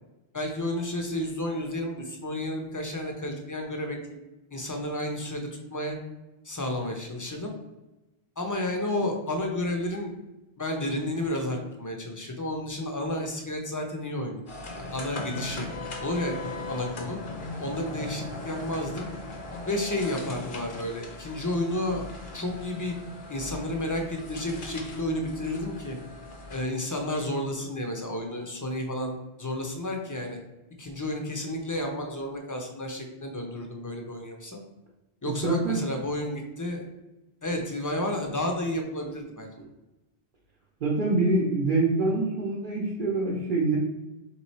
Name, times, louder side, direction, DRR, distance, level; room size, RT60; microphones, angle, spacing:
voice 1, 0.3-4.0 4.5-6.0 6.4-7.5 8.4-10.1 10.6-14.4 14.8-15.7 16.0-16.4 16.7-17.2 17.6-19.1 19.6-22.1 22.3-22.9 23.3-26.0 26.5-30.4 30.8-34.6 35.2-36.9 37.4-39.5, left 1 dB, 25° left, 2 dB, 0.5 m, -31 dB
sound 1, 14.5-26.6, left 2 dB, 55° left, 0.9 m, -39 dB
voice 2, 35.2-35.8 40.8-43.8, right 2 dB, 55° right, -4 dB, 0.8 m, -25 dB
3.7 x 3.0 x 4.2 m, 1.0 s
omnidirectional pair, 1.0 m